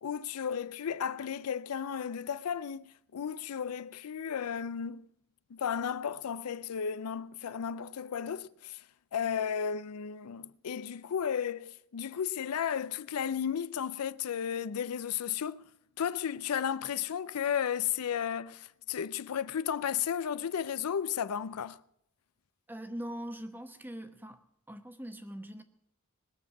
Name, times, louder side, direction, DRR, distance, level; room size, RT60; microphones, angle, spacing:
voice 1, 0.0-5.1 5.5-8.8 9.1-15.6 16.0-21.8, left 8 dB, 85° left, 0.4 m, -34 dB
voice 2, 22.7-24.4 24.7-25.6, equal, 10° right, 0.9 m, -42 dB
20.5 x 7.2 x 8.3 m
head